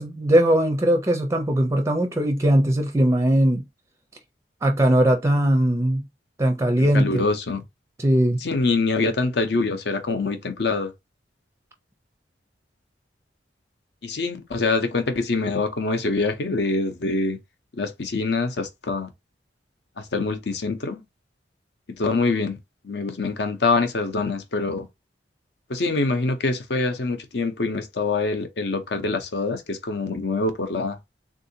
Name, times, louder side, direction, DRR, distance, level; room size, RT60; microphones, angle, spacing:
voice 1, 0.0-3.6 4.6-6.0 6.4-7.3 8.0-8.4, right 1 dB, 15° right, 0.5 m, -20 dB
voice 2, 6.8-7.6 8.4-10.9 14.0-17.4 17.8-19.1 20.0-21.0 22.0-22.6 22.8-24.9 25.7-31.0, left 3 dB, 65° left, 0.7 m, -25 dB
3.6 x 2.6 x 2.7 m
head